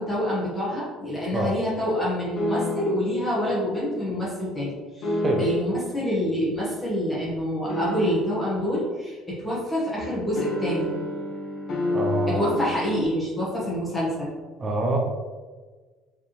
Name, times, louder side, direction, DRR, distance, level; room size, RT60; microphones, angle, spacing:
voice 1, 0.0-10.9 12.3-14.3, equal, 10° left, -8 dB, 1.2 m, -27 dB
sound 1, 2.4-3.1 5.0-5.8 7.7-8.5 10.4-13.0, left 1 dB, 45° left, 1.0 m, -29 dB
voice 2, 11.9-12.4 14.6-15.0, right 2 dB, 20° right, 0 dB, 0.6 m, -25 dB
4.8 x 3.4 x 3.0 m, 1.3 s
cardioid pair, 170°, 0 cm